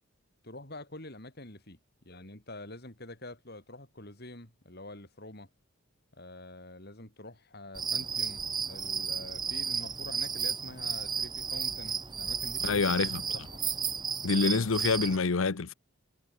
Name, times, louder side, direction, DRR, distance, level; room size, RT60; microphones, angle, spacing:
voice 1, 0.4-1.8 2.1-5.5 6.1-13.6, left 2 dB, 50° left, 4.5 m, -46 dB
sound 1, 7.8-15.2, right 6 dB, 20° right, 1.6 m, -33 dB
voice 2, 12.6-13.2 14.2-15.7, left 4 dB, 70° left, 0.8 m, -27 dB
head